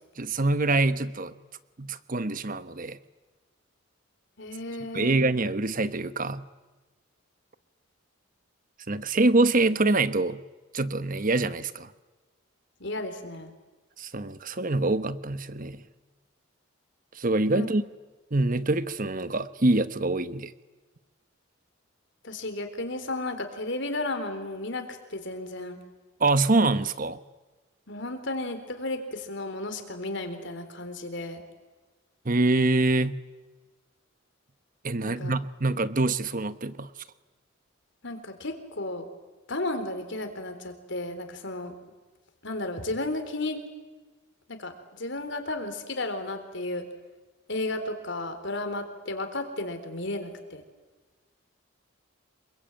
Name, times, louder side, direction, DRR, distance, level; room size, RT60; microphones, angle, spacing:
voice 1, 0.2-1.3 1.8-3.0 4.9-6.4 8.9-10.4 10.7-11.9 14.0-15.8 17.1-17.8 18.3-20.5 26.2-27.2 32.2-33.2 34.8-36.9, right 2 dB, 40° right, 13 dB, 1.1 m, -25 dB
voice 2, 4.4-5.2 12.8-13.5 17.5-17.7 22.2-25.8 27.9-31.4 35.0-35.3 38.0-39.1 39.5-41.7 42.4-43.6 44.5-46.9 47.5-50.6, left 2 dB, 60° left, 8 dB, 3.8 m, -33 dB
27.0 x 23.5 x 9.0 m, 1.2 s
head